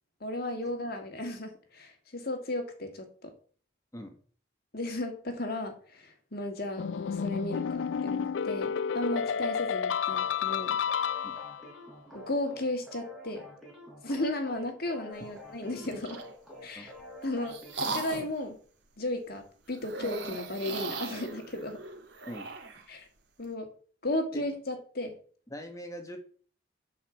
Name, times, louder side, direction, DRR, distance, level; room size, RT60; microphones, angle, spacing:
voice 1, 0.2-3.3 4.7-10.8 12.1-13.5 14.0-16.2 16.6-16.9 17.2-18.6 19.0-19.4 19.7-21.8 22.9-23.1 23.4-23.7 24.0-25.2, left 1 dB, 55° left, 5 dB, 2.1 m, -35 dB
sound 1, 6.8-11.7, left 7 dB, 85° left, 0.4 m, -31 dB
sound 2, 10.1-18.1, left 1 dB, ahead, 3.8 m, -49 dB
sound 3, 15.7-16.3 17.0-18.4 19.8-22.8, right 3 dB, 75° right, 1.7 m, -38 dB
voice 2, 25.5-26.2, equal, 20° left, 5 dB, 1.4 m, -41 dB
8.5 x 5.3 x 7.2 m, 0.43 s
head